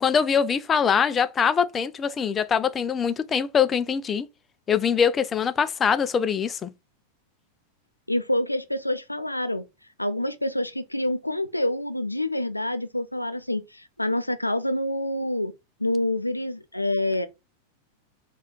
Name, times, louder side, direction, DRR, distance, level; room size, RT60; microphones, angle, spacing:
voice 1, 0.0-4.3 4.7-6.7, left 7 dB, 20° left, 0.4 m, -23 dB
voice 2, 8.1-9.6 10.0-15.5 15.8-17.3, left 1 dB, 85° left, 0.4 m, -27 dB
4.1 x 2.4 x 3.7 m
figure-of-eight pair, 90°, 0 cm